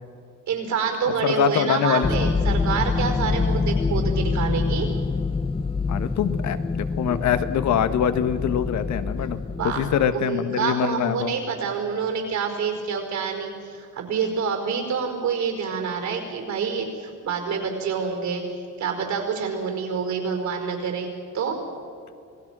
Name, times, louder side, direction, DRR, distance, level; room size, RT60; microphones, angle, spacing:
voice 1, 0.5-5.0 9.5-9.8 10.1-21.6, right 6 dB, 70° right, 4 dB, 5.0 m, -27 dB
voice 2, 1.2-2.3 5.9-11.3, left 8 dB, 65° left, 11 dB, 1.4 m, -24 dB
sound 1, 2.0-10.1, left 4 dB, 20° left, 0.6 m, -26 dB
27.5 x 19.5 x 6.2 m, 2.5 s
cardioid pair, 140°, 30 cm